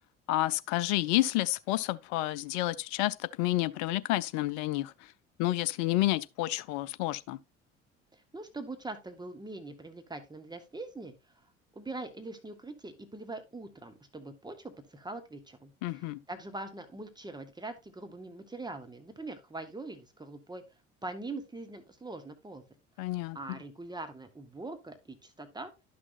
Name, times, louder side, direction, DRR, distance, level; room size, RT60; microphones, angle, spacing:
voice 1, 0.3-4.9 5.4-7.4 15.8-16.2 23.0-23.4, left 16 dB, 50° left, 0.5 m, -30 dB
voice 2, 8.1-11.1 11.7-20.6 21.0-22.6 23.0-25.7, right 2 dB, 10° right, 1.0 m, -43 dB
11.0 x 6.1 x 2.5 m
figure-of-eight pair, 55°, 36 cm